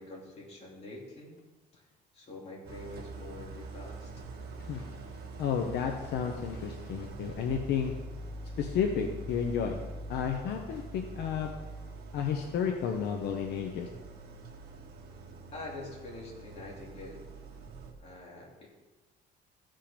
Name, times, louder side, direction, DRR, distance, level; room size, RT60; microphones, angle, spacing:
voice 1, 0.0-1.3 1.7-1.8 2.1-4.1 15.5-17.2 18.0-18.7, left 2 dB, 35° left, -3 dB, 3.1 m, -45 dB
Idling, 2.6-17.9, right 2 dB, 70° right, 1.6 m, -44 dB
voice 2, 5.4-7.9 8.6-9.8 10.1-11.5 12.1-13.9, left 7 dB, 75° left, 3 dB, 1.0 m, -32 dB
14.5 x 5.6 x 5.2 m, 1.2 s
cardioid pair, 155°, 17 cm